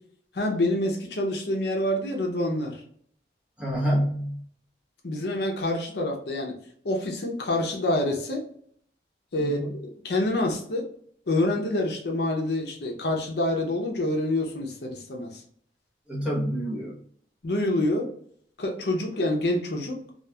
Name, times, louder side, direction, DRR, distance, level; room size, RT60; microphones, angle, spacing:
voice 1, 0.3-2.8 5.0-6.6 6.8-8.4 9.3-9.6 10.0-10.9 11.3-15.4 17.4-18.1 18.6-20.2, left 1 dB, 70° left, 1 dB, 0.6 m, -27 dB
voice 2, 3.6-4.4 9.4-9.7 16.1-17.0, equal, 5° right, -6 dB, 0.9 m, -27 dB
3.0 x 2.4 x 2.2 m, 0.62 s
head